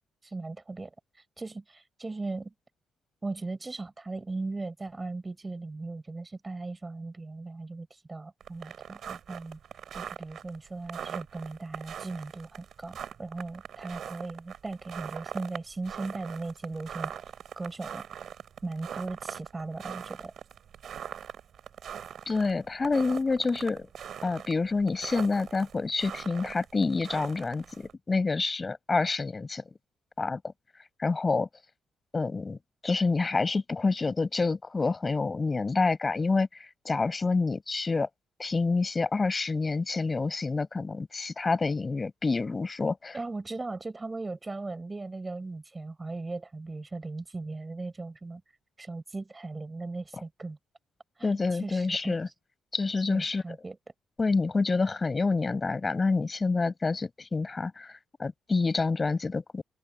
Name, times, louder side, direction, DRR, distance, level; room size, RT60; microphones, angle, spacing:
voice 1, 0.2-0.9 1.4-2.5 3.2-9.6 9.9-17.1 17.6-18.0 18.6-20.3 43.1-48.4 48.8-50.6 51.2-52.1 53.1-53.8, right 3 dB, 20° right, 6.2 m, -38 dB
sound 1, 8.4-27.9, right 8 dB, 60° right, 7.4 m, -42 dB
voice 2, 22.3-23.9 24.2-29.6 30.2-30.4 31.0-31.5 32.1-32.6 32.8-38.1 38.4-43.2 51.2-52.3 52.7-53.4 54.2-59.6, left 3 dB, 25° left, 7.4 m, -28 dB
cardioid pair, 90°, 0 cm